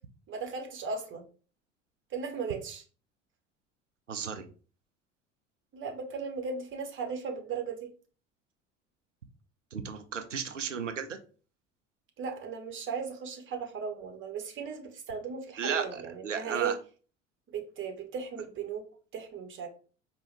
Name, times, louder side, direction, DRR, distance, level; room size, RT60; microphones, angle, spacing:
voice 1, 0.3-1.3 2.1-2.8 5.7-7.9 12.2-16.8 17.5-18.8 19.1-19.7, right 6 dB, 35° right, 4 dB, 1.0 m, -36 dB
voice 2, 4.1-4.4 9.7-11.2 15.6-16.7, right 6 dB, 90° right, 8 dB, 0.5 m, -34 dB
4.6 x 2.3 x 3.2 m, 0.39 s
figure-of-eight pair, 65°, 36 cm